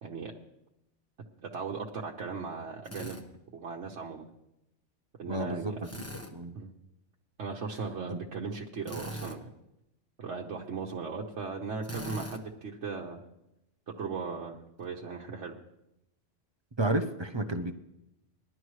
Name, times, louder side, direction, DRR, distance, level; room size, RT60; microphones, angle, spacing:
voice 1, 0.0-0.3 1.4-3.2 3.5-4.2 5.2-5.9 6.5-6.7 7.4-9.5 10.2-13.2 13.9-15.6, right 5 dB, 70° right, -2 dB, 1.3 m, -37 dB
Drill, 2.8-3.2 5.8-6.3 8.8-9.4 11.8-12.4, equal, 15° left, 1.0 m, -39 dB
voice 2, 5.3-5.7 6.3-6.5 8.1-8.2 16.8-17.7, right 2 dB, 30° right, 7 dB, 0.6 m, -31 dB
20.5 x 12.0 x 3.2 m, 0.88 s
omnidirectional pair, 1.3 m